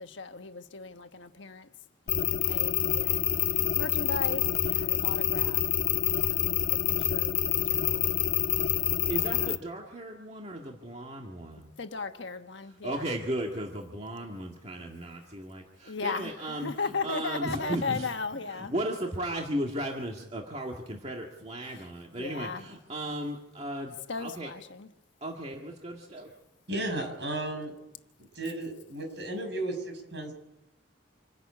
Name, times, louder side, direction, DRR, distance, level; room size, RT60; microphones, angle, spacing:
voice 1, 0.0-1.7 2.1-3.2 3.7-5.6 6.1-7.4 7.7-8.3 9.1-9.2 11.8-13.1 15.8-18.7 21.7-21.9 22.2-22.7 24.1-24.9, left 4 dB, 65° left, 7 dB, 1.3 m, -37 dB
sound 1, 2.1-9.6, left 11 dB, 45° left, 0.7 m, -27 dB
voice 2, 9.1-11.7 12.8-16.7 17.0-18.1 18.5-24.5 25.2-26.3, right 1 dB, 30° right, 0 dB, 2.0 m, -35 dB
voice 3, 26.7-27.7 28.3-30.3, right 1 dB, 60° right, 3 dB, 6.6 m, -34 dB
27.0 x 11.5 x 8.5 m, 0.89 s
head